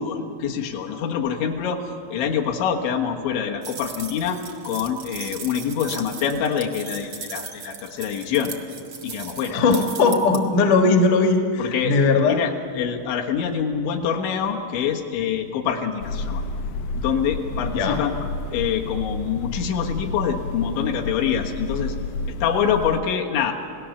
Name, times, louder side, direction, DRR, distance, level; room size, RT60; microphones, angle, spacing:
voice 1, 0.0-1.8 2.1-4.4 4.7-8.5 9.0-9.6 11.6-12.0 12.3-16.4 17.0-18.1 18.5-21.9 22.4-23.5, left 7 dB, 75° left, 1 dB, 3.6 m, -25 dB
sound 1, 3.6-10.4, right 5 dB, 80° right, 1.2 m, -37 dB
voice 2, 9.5-12.4 17.7-18.0, left 3 dB, 60° left, 4 dB, 2.4 m, -19 dB
sound 2, 16.0-23.0, left 2 dB, 90° left, 2.1 m, -31 dB
29.5 x 18.0 x 7.1 m, 2.4 s
omnidirectional pair, 5.6 m